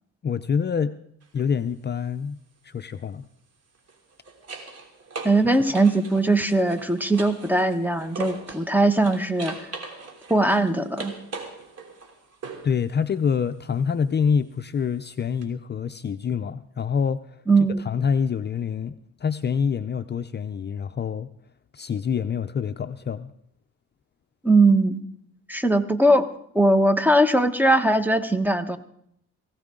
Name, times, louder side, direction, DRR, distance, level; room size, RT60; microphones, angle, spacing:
voice 1, 0.2-1.0 1.3-2.4 2.6-3.3 12.6-17.4 17.8-21.3 21.7-23.3, left 6 dB, 35° left, 9 dB, 0.5 m, -26 dB
sound 1, 1.2-1.4 3.7-8.7 9.0-12.8 15.4-15.5, right 4 dB, 55° right, 3.3 m, -39 dB
voice 2, 5.2-9.6 10.3-11.1 17.5-17.8 24.4-25.0 25.5-26.3 26.5-28.8, right 2 dB, 5° right, 10 dB, 1.1 m, -20 dB
19.0 x 16.5 x 3.8 m, 0.71 s
cardioid pair, 90°, 30 cm